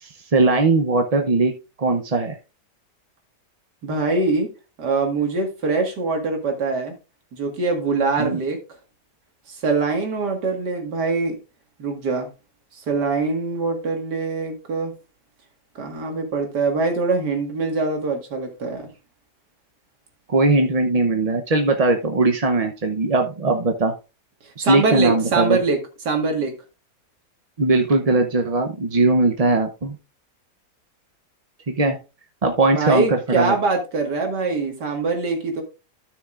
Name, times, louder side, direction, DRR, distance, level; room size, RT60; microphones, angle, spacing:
voice 1, 0.0-1.5 1.8-2.4 8.2-8.4 20.3-23.9 24.6-25.6 27.6-29.9 31.7-32.0 32.4-33.6, right 3 dB, 40° right, 4 dB, 0.5 m, -19 dB
voice 2, 3.8-4.5 4.8-6.9 7.3-8.6 9.5-11.4 11.8-12.3 12.7-14.9 15.8-18.9 24.6-25.8 26.0-26.5 32.7-35.6, right 4 dB, 85° right, 3 dB, 2.4 m, -23 dB
13.0 x 6.3 x 2.5 m, 0.30 s
omnidirectional pair, 1.7 m